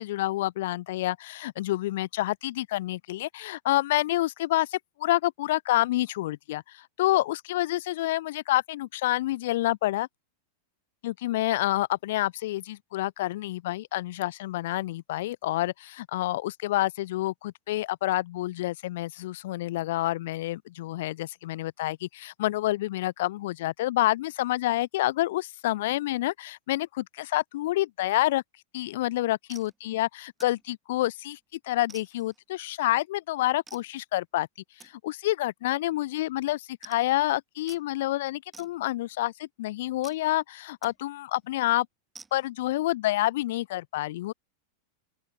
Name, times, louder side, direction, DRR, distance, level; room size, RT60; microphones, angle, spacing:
voice 1, 0.0-10.1 11.0-28.4 28.7-31.4 31.6-34.5 34.8-41.9 42.3-44.3, left 16 dB, 55° left, 1.1 m, -28 dB
sound 1, 28.9-29.1 29.5-29.8 30.4-30.7 31.1-31.4 31.9-32.4 33.7-33.9 34.8-34.9 35.6-35.8 36.0-36.1 36.4-36.5 36.8-37.2 37.7-37.8 38.5-39.2 40.0-40.2 40.8-41.0 41.3-41.5 42.1-42.5, right 4 dB, 15° right, 4.2 m, -50 dB
open air
figure-of-eight pair, 90°, 0 cm